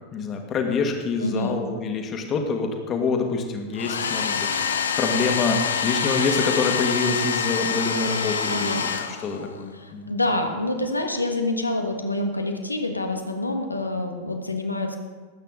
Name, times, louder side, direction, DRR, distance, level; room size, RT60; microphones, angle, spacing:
voice 1, 0.1-8.8 9.2-10.1, left 4 dB, 30° left, 3 dB, 2.0 m, -26 dB
voice 2, 1.2-1.6 8.5-8.8 9.7-15.0, left 2 dB, 85° left, 4 dB, 1.5 m, -27 dB
Domestic sounds home sounds, 3.7-9.6, left 6 dB, 70° left, 0.9 m, -26 dB
19.5 x 8.8 x 3.8 m, 1.4 s
figure-of-eight pair, 90°, 0 cm